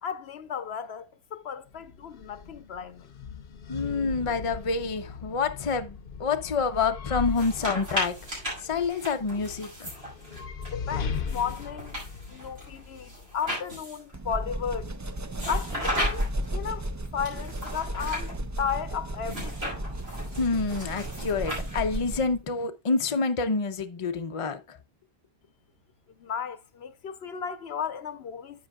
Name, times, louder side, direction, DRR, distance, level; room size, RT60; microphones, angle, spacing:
voice 1, 0.0-3.1 10.7-12.0 12.3-14.9 15.5-19.9 26.1-28.7, left 7 dB, 85° left, 1.1 m, -34 dB
sound 1, 1.7-13.8, left 6 dB, 60° left, 1.0 m, -39 dB
voice 2, 3.7-8.2 8.6-9.9 20.4-24.8, left 4 dB, 35° left, 0.7 m, -28 dB
sound 2, 7.3-10.7 11.3-14.2 15.3-16.5 17.3-18.3 19.2-22.1, equal, 90° right, 6.2 m, -36 dB
sound 3, 14.1-22.4, right 1 dB, 25° right, 0.4 m, -34 dB
10.0 x 8.3 x 2.3 m
omnidirectional pair, 1.0 m